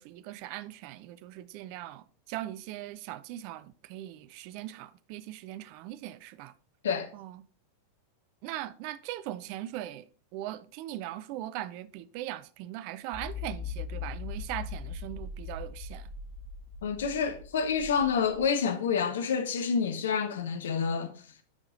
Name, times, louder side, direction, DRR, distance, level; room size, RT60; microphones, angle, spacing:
voice 1, 0.0-6.5 7.1-7.4 8.4-10.1 10.3-16.1, right 14 dB, 45° right, 0.4 m, -40 dB
sound 1, 13.1-18.5, left 5 dB, ahead, 1.8 m, -40 dB
voice 2, 16.8-21.1, left 6 dB, 60° left, 0.8 m, -28 dB
7.3 x 4.9 x 3.9 m
figure-of-eight pair, 90°, 0 cm